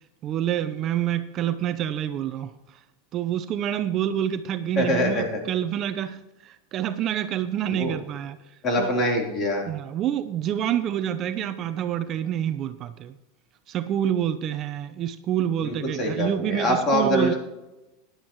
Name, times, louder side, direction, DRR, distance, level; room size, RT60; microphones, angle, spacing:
voice 1, 0.2-2.5 3.1-8.4 8.8-8.9 9.7-13.1 13.7-17.3, right 10 dB, 35° right, 10 dB, 0.6 m, -27 dB
voice 2, 4.8-5.4 7.8-7.9 8.6-9.6 15.6-17.3, equal, 30° left, 0 dB, 3.7 m, -24 dB
15.5 x 10.5 x 3.1 m, 0.97 s
supercardioid pair, 145°, 0 cm